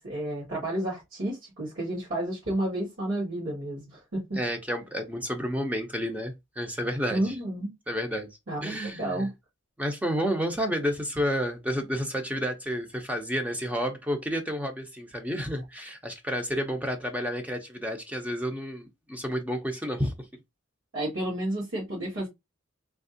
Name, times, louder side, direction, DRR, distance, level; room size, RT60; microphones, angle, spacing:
voice 1, 0.0-4.4 7.1-7.7 8.5-9.3 20.9-22.3, right 1 dB, 75° right, 2.0 m, -31 dB
voice 2, 4.4-7.4 7.9-9.3 9.8-20.3, equal, 5° right, 0.5 m, -30 dB
3.4 x 2.8 x 2.6 m
head